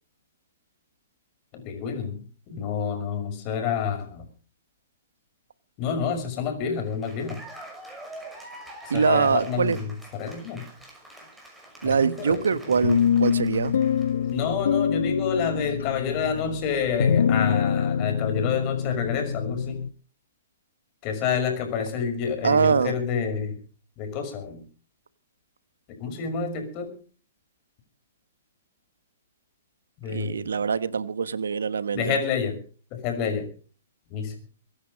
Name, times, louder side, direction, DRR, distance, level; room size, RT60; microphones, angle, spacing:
voice 1, 1.5-4.2 5.8-7.4 8.9-10.7 11.8-12.7 14.1-19.9 21.0-23.6 24.0-24.6 25.9-27.0 30.0-30.5 31.9-32.6 32.9-33.5 34.1-34.4, left 6 dB, 35° left, 6.0 m, -29 dB
Cheering / Applause, 6.8-14.3, right 1 dB, 5° right, 6.1 m, -45 dB
voice 2, 8.9-9.8 11.8-13.8 22.4-23.0 30.1-32.2, right 6 dB, 80° right, 1.2 m, -23 dB
sound 1, 12.8-19.9, left 7 dB, 75° left, 0.9 m, -25 dB
23.5 x 10.5 x 5.2 m
hypercardioid pair, 135°, 0 cm